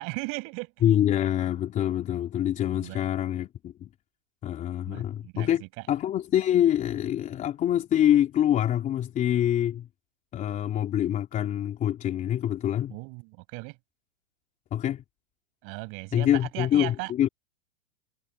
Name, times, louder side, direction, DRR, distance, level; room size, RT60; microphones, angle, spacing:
voice 1, 0.0-0.7 2.7-3.0 4.9-5.7 12.9-13.8 15.6-16.3 16.5-17.1, right 31 dB, 35° right, 6.8 m, -37 dB
voice 2, 0.8-3.9 4.4-9.9 10.3-13.0 14.7-15.0 16.1-17.3, left 11 dB, 20° left, 3.7 m, -25 dB
supercardioid pair, 160°, 37 cm